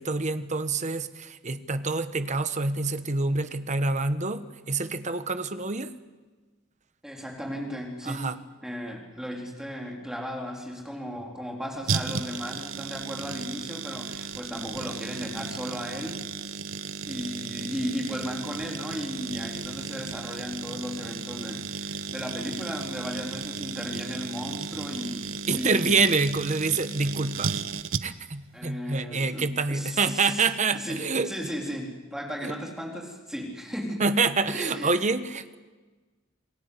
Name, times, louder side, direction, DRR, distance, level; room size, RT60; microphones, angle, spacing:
voice 1, 0.0-5.9 8.0-8.4 25.5-27.6 28.0-31.3 32.4-32.5 34.0-35.6, right 3 dB, 35° right, 11 dB, 1.2 m, -27 dB
voice 2, 7.0-8.3 8.6-16.2 17.1-25.3 25.5-26.0 28.5-30.4 30.7-34.0 34.4-34.9, equal, 5° right, 0 dB, 4.1 m, -35 dB
sound 1, 11.9-28.4 28.6-28.7, right 5 dB, 80° right, 1.0 m, -34 dB
28.0 x 19.5 x 8.4 m, 1.3 s
head